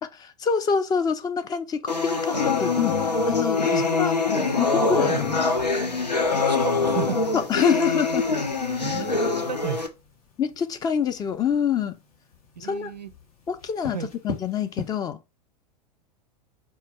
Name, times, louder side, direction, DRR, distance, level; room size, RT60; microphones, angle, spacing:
voice 1, 0.0-3.0 3.3-3.7 4.0-4.1 4.5-5.5 7.3-8.3 10.4-12.0 12.6-12.9 13.5-14.0 14.2-15.2, left 7 dB, 20° left, 0.4 m, -26 dB
sound 1, 1.9-9.9, left 4 dB, 85° left, 0.7 m, -24 dB
sound 2, 4.5-14.9, left 3 dB, 60° left, 1.3 m, -44 dB
voice 2, 6.5-7.3 8.8-9.9 12.6-13.1 13.9-14.1, right 7 dB, 90° right, 0.5 m, -33 dB
4.4 x 2.3 x 4.2 m
figure-of-eight pair, 90°, 21 cm